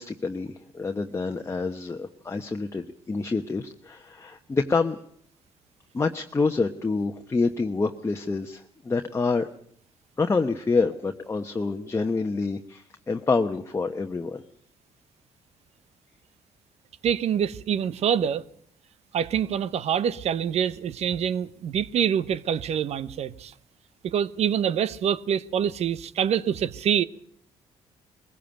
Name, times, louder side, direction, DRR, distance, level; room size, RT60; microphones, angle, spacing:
voice 1, 0.0-5.0 5.9-9.5 10.2-14.4, left 4 dB, 25° left, 1.1 m, -27 dB
voice 2, 17.0-18.4 19.1-23.5 24.0-27.0, right 8 dB, 65° right, 0.9 m, -25 dB
21.0 x 15.5 x 9.0 m
cardioid pair, 85°, 12 cm